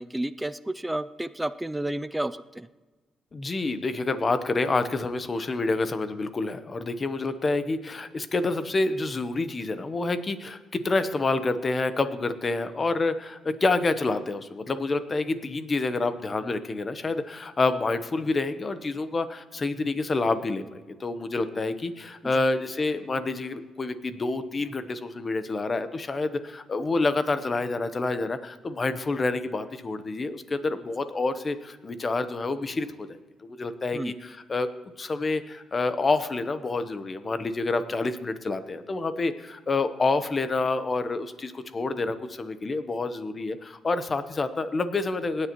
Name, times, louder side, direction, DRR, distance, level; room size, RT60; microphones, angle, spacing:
voice 1, 0.0-2.7 22.2-22.3 33.9-34.1, right 1 dB, 5° right, 12 dB, 0.4 m, -31 dB
voice 2, 3.3-20.6 21.0-33.1 33.4-34.7 35.0-45.5, left 3 dB, 30° left, 11 dB, 0.9 m, -28 dB
26.0 x 9.8 x 3.0 m, 1.3 s
cardioid pair, 130°, 0 cm